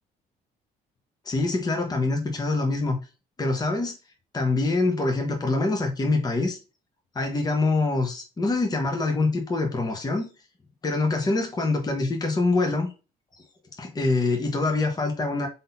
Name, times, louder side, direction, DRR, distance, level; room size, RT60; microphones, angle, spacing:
voice 1, 1.2-3.0 3.4-4.0 4.3-6.6 7.1-10.3 10.8-12.9 13.8-15.5, left 3 dB, 25° left, 1.2 m, -25 dB
3.8 x 3.7 x 2.7 m
cardioid pair, 110°, 17 cm